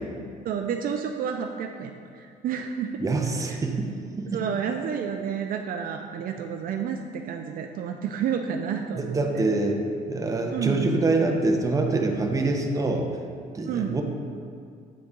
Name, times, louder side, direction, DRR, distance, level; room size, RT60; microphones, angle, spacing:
voice 1, 0.4-2.9 3.5-3.6 4.3-9.4 10.5-10.9 13.7-14.0, right 7 dB, 55° right, 4 dB, 0.4 m, -30 dB
voice 2, 3.0-3.9 4.2-4.4 8.9-9.8 10.1-13.1 13.5-14.0, right 3 dB, 20° right, 3 dB, 0.7 m, -25 dB
8.6 x 3.8 x 3.6 m, 2.2 s
cardioid pair, 110°, 17 cm